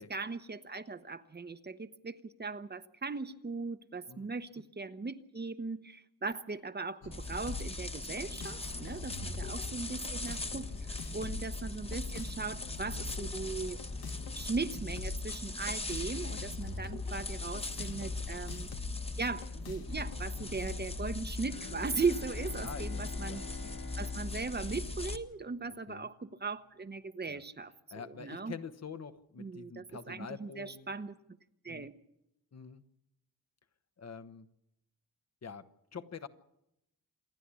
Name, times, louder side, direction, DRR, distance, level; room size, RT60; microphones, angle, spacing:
voice 1, 0.0-10.7 11.1-13.8 14.3-18.7 19.2-23.4 24.0-28.6 29.4-31.1 31.6-31.9, right 4 dB, 30° right, 11 dB, 1.0 m, -38 dB
sound 1, 7.0-21.0, left 5 dB, 90° left, 1.8 m, -46 dB
sound 2, 7.1-25.2, left 2 dB, 15° left, 1.3 m, -39 dB
voice 2, 9.1-9.6 11.2-11.4 18.3-18.7 22.6-23.8 25.9-26.1 27.3-27.4 27.9-30.9 31.7-31.9 32.5-32.8 34.0-34.5 35.4-36.3, left 6 dB, 45° left, 10 dB, 1.1 m, -47 dB
Bowed string instrument, 21.5-25.8, left 5 dB, 75° left, 2.3 m, -48 dB
27.0 x 10.0 x 9.8 m, 0.85 s
cardioid pair, 95°, 36 cm